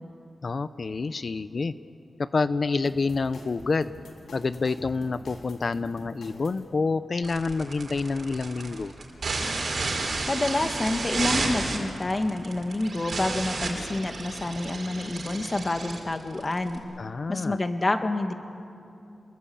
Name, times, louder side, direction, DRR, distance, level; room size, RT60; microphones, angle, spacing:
voice 1, 0.4-1.7 2.2-3.9 4.3-8.9 17.0-17.6, left 4 dB, 45° left, 13 dB, 0.6 m, -28 dB
sound 1, 2.9-6.7, left 1 dB, 80° left, 3.7 m, -46 dB
sound 2, 7.2-16.8, right 3 dB, 60° right, 4.6 m, -32 dB
voice 2, 10.3-16.8 17.3-18.3, left 2 dB, 30° left, 7 dB, 1.7 m, -28 dB
27.5 x 21.5 x 8.6 m, 2.7 s
wide cardioid pair, 105°, 0 cm